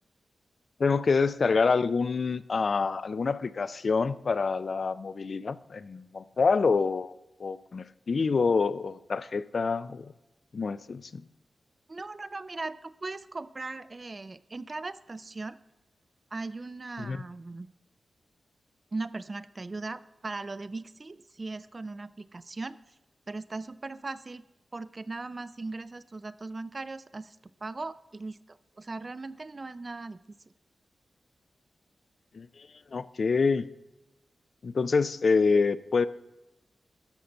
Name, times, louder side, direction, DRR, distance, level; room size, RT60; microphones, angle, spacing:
voice 1, 0.8-7.1 7.4-10.1 10.5-11.3 17.0-17.2 32.3-33.7 34.6-36.1, left 4 dB, 50° left, 15 dB, 0.4 m, -27 dB
voice 2, 11.9-15.6 16.3-17.7 18.9-22.8 23.3-24.4 24.7-27.4 27.6-30.2, right 3 dB, 30° right, 15 dB, 0.4 m, -38 dB
13.0 x 5.8 x 5.2 m, 0.99 s
wide cardioid pair, 150°, 0 cm